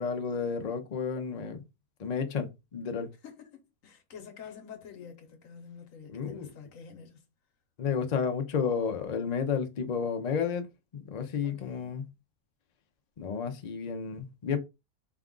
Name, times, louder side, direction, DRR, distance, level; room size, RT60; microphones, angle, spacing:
voice 1, 0.0-1.6 2.0-3.1 6.1-6.5 7.8-10.7 10.9-12.1 13.2-14.6, left 6 dB, 90° left, 0.3 m, -31 dB
voice 2, 3.2-7.2 11.4-12.0, left 7 dB, 60° left, 1.2 m, -48 dB
4.5 x 2.4 x 3.6 m
omnidirectional pair, 1.7 m